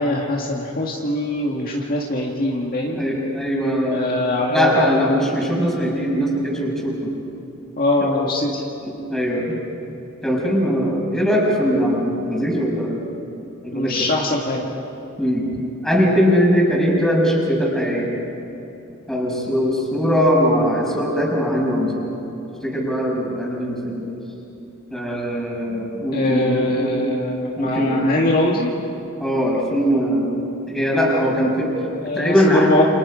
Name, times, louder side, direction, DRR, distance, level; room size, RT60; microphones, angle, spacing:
voice 1, 0.0-3.1 3.9-5.3 7.8-8.5 13.7-14.7 26.1-28.7 32.0-32.8, left 2 dB, 45° left, -1 dB, 1.9 m, -22 dB
voice 2, 2.9-4.2 4.5-7.1 8.8-9.6 10.2-13.0 13.6-14.1 15.2-15.5 15.8-18.1 19.1-22.0 22.6-24.1 24.9-26.9 27.6-28.0 29.2-31.7 32.0-32.7, equal, ahead, -3 dB, 5.6 m, -20 dB
29.5 x 27.5 x 5.1 m, 3.0 s
head